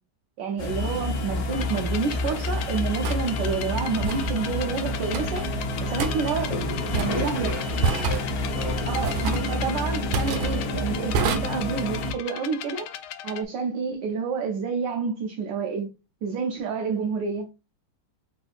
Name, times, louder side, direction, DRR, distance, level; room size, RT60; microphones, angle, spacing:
voice 1, 0.4-5.5 5.8-6.6 6.9-7.5 8.9-12.9 13.2-15.9 16.2-17.5, right 5 dB, 70° right, 1.2 m, -29 dB
sound 1, 0.6-12.1, left 1 dB, 55° left, 1.2 m, -29 dB
sound 2, 1.3-1.5 3.0-3.2 4.0-4.3 5.1-5.5 6.0-6.1 6.9-7.3 7.8-8.3 9.0-9.5 10.1-10.5 11.1-11.4, right 5 dB, 85° right, 1.6 m, -27 dB
sound 3, 1.5-13.5, left 10 dB, 90° left, 1.4 m, -38 dB
voice 2, 6.9-8.2 8.5-8.8, right 1 dB, 35° right, 2.0 m, -36 dB
4.0 x 3.7 x 2.5 m
omnidirectional pair, 2.3 m